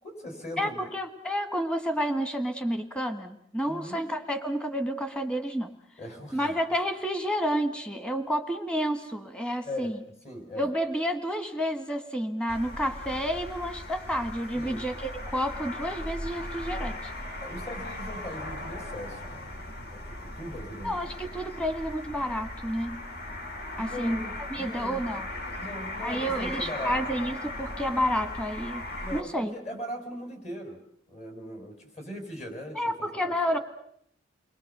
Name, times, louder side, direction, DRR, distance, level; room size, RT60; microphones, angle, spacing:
voice 1, 0.0-0.9 3.6-4.0 6.0-6.5 9.6-10.0 10.2-10.7 14.5-14.8 17.4-21.0 23.8-24.3 24.6-25.0 25.6-27.0 29.0-30.8 31.1-33.6, equal, 35° left, 4 dB, 5.2 m, -40 dB
voice 2, 0.6-5.7 6.3-10.0 10.6-17.1 20.8-23.0 23.8-24.2 24.5-25.3 26.0-28.8 29.1-29.5 32.7-33.6, equal, 5° left, 8 dB, 1.6 m, -30 dB
sound 1, 12.5-29.2, left 1 dB, 55° left, 2.6 m, -38 dB
29.5 x 22.0 x 6.8 m, 0.69 s
head